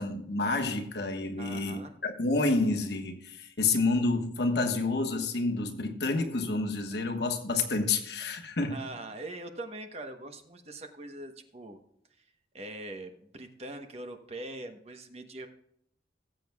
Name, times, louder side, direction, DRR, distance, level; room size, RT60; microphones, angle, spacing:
voice 1, 0.0-8.8, left 3 dB, 70° left, 1.4 m, -29 dB
voice 2, 1.4-2.0 8.7-11.8 12.2-12.3 12.5-15.5, right 2 dB, 35° right, 1.0 m, -42 dB
18.5 x 7.6 x 2.3 m
head